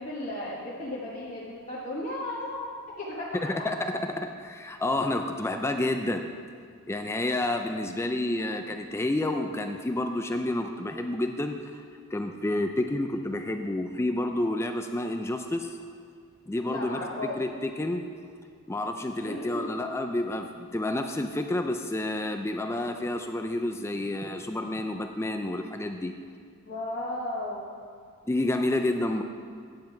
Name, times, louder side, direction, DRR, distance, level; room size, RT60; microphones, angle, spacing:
voice 1, 0.0-3.3 16.7-17.4 19.2-19.8 26.6-27.7, left 1 dB, 35° left, -7 dB, 1.1 m, -35 dB
voice 2, 3.4-6.3 6.9-11.8 12.1-15.8 16.5-18.0 18.7-26.1 28.3-29.2, left 1 dB, 10° left, 6 dB, 0.3 m, -29 dB
9.6 x 7.5 x 4.5 m, 2.1 s
head